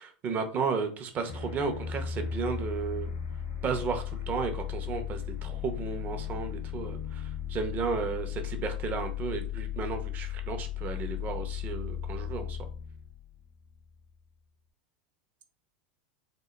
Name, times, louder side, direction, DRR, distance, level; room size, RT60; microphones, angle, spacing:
voice 1, 0.0-3.1 3.6-12.6, right 5 dB, 35° right, 6 dB, 0.5 m, -33 dB
sound 1, 1.3-14.0, left 9 dB, 85° left, 0.7 m, -36 dB
2.8 x 2.0 x 2.2 m, 0.39 s
hypercardioid pair, 90°, 5 cm